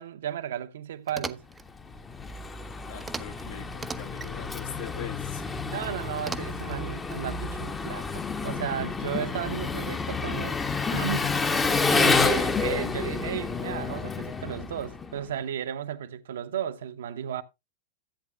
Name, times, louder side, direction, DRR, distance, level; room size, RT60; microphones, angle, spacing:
voice 1, 0.0-1.4 5.7-10.6 10.9-17.4, right 9 dB, 60° right, 0.7 m, -34 dB
sound 1, 1.1-1.7 3.0-3.4 3.7-4.3 6.2-6.8, right 4 dB, 15° right, 0.5 m, -38 dB
Engine, 1.7-15.3, left 4 dB, 15° left, 0.8 m, -29 dB
voice 2, 2.9-5.7, left 9 dB, 55° left, 1.1 m, -42 dB
14.0 x 8.3 x 2.3 m
figure-of-eight pair, 90°, 0 cm